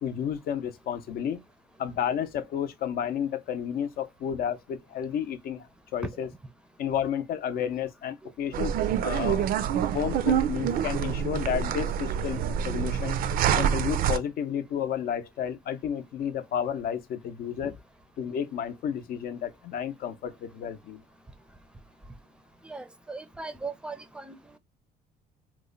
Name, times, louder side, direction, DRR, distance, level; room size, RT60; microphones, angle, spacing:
voice 1, 0.0-1.4 1.8-5.7 5.9-6.3 6.8-8.7 9.0-13.2 13.5-17.8 18.2-21.0, left 9 dB, 60° left, 0.6 m, -31 dB
sound 1, 8.5-14.2, right 9 dB, 60° right, 0.4 m, -26 dB
voice 2, 22.6-24.4, right 3 dB, 5° right, 0.5 m, -39 dB
3.0 x 2.1 x 3.7 m
cardioid pair, 110°, 17 cm